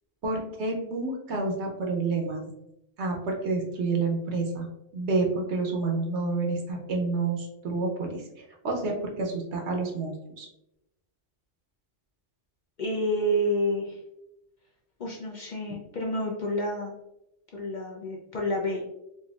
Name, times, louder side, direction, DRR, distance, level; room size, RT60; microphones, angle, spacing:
voice 1, 0.2-2.4 3.0-4.7 4.9-8.2 8.6-10.5, right 3 dB, 70° right, 1 dB, 1.0 m, -29 dB
voice 2, 12.8-14.0 15.0-16.9 17.5-18.8, equal, 50° left, -2 dB, 0.6 m, -29 dB
4.2 x 2.7 x 2.3 m, 0.87 s
omnidirectional pair, 1.2 m